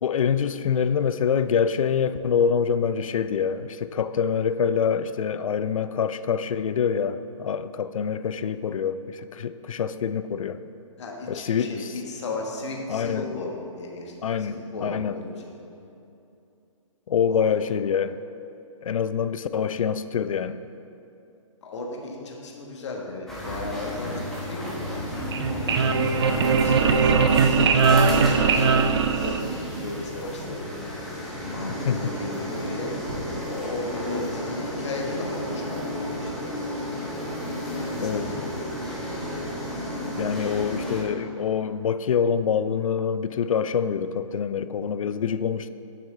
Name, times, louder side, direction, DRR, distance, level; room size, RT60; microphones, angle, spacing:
voice 1, 0.0-10.6 11.3-11.9 12.9-13.2 14.2-15.2 17.1-18.2 18.8-20.6 31.7-32.1 38.0-38.3 40.2-45.7, left 7 dB, 75° left, 12 dB, 0.4 m, -25 dB
voice 2, 11.0-15.4 15.8-15.9 17.3-17.5 21.6-25.8 26.2-27.8 28.5-30.7 31.4-32.9 33.5-36.5 37.7-38.5 39.1-39.3, left 2 dB, 60° left, -1 dB, 1.4 m, -35 dB
sound 1, 23.3-41.0, left 1 dB, ahead, 1.1 m, -32 dB
sound 2, 25.1-29.8, right 5 dB, 50° right, 0.5 m, -20 dB
sound 3, 25.8-26.3 26.6-35.1, right 2 dB, 85° right, 1.6 m, -42 dB
8.8 x 6.1 x 3.7 m, 2.8 s
hypercardioid pair, 150°, 17 cm